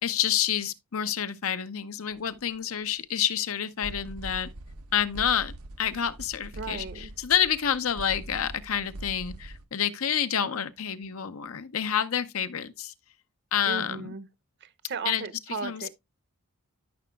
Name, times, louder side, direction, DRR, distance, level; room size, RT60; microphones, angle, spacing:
voice 1, 0.0-4.5 4.9-12.9 13.5-14.1 15.0-15.2 15.6-15.9, left 9 dB, 70° left, 0.7 m, -28 dB
sound 1, 2.1-2.4 2.9-3.0 3.3-3.4 3.8-9.7, right 1 dB, 85° right, 0.8 m, -42 dB
voice 2, 6.6-7.1 13.7-14.3 14.6-15.9, right 4 dB, 50° right, 0.8 m, -36 dB
13.0 x 5.9 x 2.3 m
head